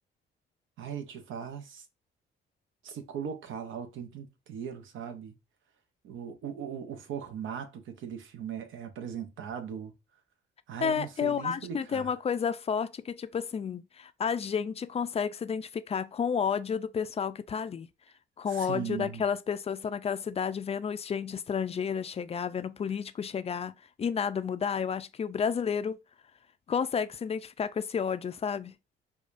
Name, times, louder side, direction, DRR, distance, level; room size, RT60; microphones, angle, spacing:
voice 1, 0.8-1.8 2.8-5.4 6.0-9.9 10.7-12.1 18.5-19.2, right 8 dB, 80° right, 0.8 m, -39 dB
voice 2, 10.8-17.9 18.4-26.0 26.7-28.7, left 7 dB, 30° left, 0.4 m, -31 dB
4.8 x 2.3 x 2.5 m
cardioid pair, 90°, 20 cm